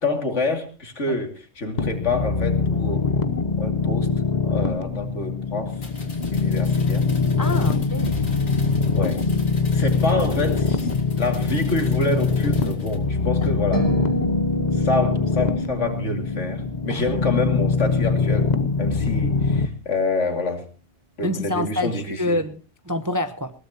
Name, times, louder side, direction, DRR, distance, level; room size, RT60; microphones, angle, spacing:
voice 1, 0.0-3.1 3.6-4.1 4.4-5.7 6.3-7.0 9.0-9.2 9.7-10.9 11.2-13.9 14.7-18.5 18.8-20.6 21.2-22.4, left 2 dB, 60° left, 5 dB, 2.8 m, -27 dB
sound 1, 1.8-19.7, left 4 dB, 35° left, 0.9 m, -23 dB
sound 2, 5.7-13.0, left 2 dB, 80° left, 3.7 m, -45 dB
voice 2, 7.4-8.2 13.4-13.6 16.9-17.1 21.2-23.5, left 1 dB, 20° right, 9 dB, 0.7 m, -27 dB
sound 3, 13.7-18.0, right 2 dB, 15° left, 2.6 m, -30 dB
20.5 x 17.5 x 2.9 m, 0.35 s
omnidirectional pair, 1.4 m